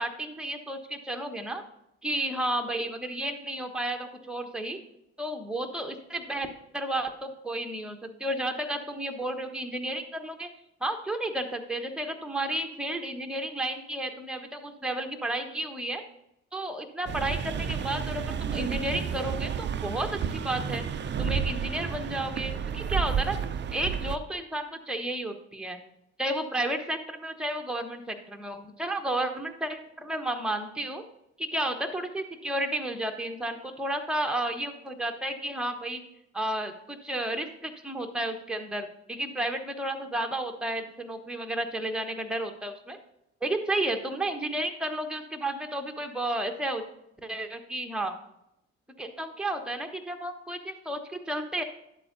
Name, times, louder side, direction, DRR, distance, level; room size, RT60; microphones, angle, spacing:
voice 1, 0.0-1.6 2.0-4.8 5.2-10.5 10.8-16.0 16.5-20.8 21.2-23.4 23.7-25.8 26.2-31.0 31.4-36.0 36.3-43.0 43.4-46.8 47.2-48.2 49.0-51.6, right 1 dB, 5° right, 5 dB, 1.1 m, -32 dB
sound 1, 17.1-24.2, right 7 dB, 35° right, 0.5 m, -31 dB
11.5 x 7.5 x 2.7 m, 0.84 s
figure-of-eight pair, 50°, 33 cm